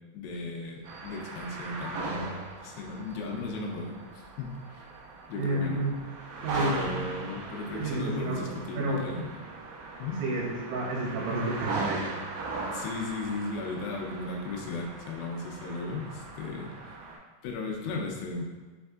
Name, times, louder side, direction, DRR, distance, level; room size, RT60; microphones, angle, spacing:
voice 1, 0.1-4.9 5.3-5.8 6.6-9.4 10.0-10.2 12.7-16.7 17.4-18.4, left 3 dB, 85° left, 0 dB, 2.7 m, -36 dB
sound 1, 0.8-17.2, right 3 dB, 70° right, 2.3 m, -39 dB
voice 2, 5.4-5.9 6.4-6.8 7.7-8.4 8.8-9.0 10.2-12.1, right 2 dB, 85° right, -3 dB, 3.0 m, -30 dB
6.4 x 3.4 x 2.4 m, 1.3 s
omnidirectional pair, 4.9 m